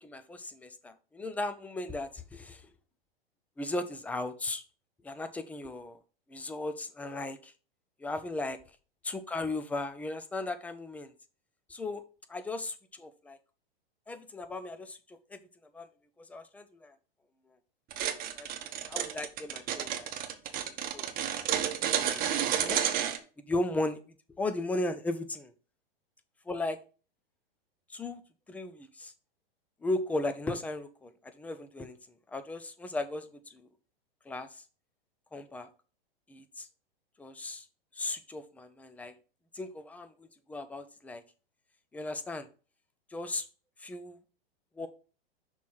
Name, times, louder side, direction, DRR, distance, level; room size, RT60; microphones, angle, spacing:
voice 1, 0.0-2.7 3.6-4.6 5.0-6.0 6.3-7.5 8.0-8.6 9.0-11.1 11.7-12.0 12.3-13.4 14.1-15.4 15.7-15.9 16.2-16.9 18.4-20.1 20.7-21.1 21.3-22.8 23.5-24.0 24.3-25.5 26.5-26.8 27.9-28.2 28.5-29.1 29.8-32.0 32.3-33.7 34.3-34.6 35.3-35.7 36.3-36.7 37.2-37.7 37.9-39.1 39.5-41.2 41.9-42.5 43.1-43.5 43.8-44.2 44.8-44.9, left 2 dB, 5° left, 9 dB, 0.4 m, -36 dB
sound 1, 17.9-23.2, right 9 dB, 30° right, 0.9 m, -31 dB
6.0 x 3.1 x 5.5 m, 0.35 s
hypercardioid pair, 105°, 30 cm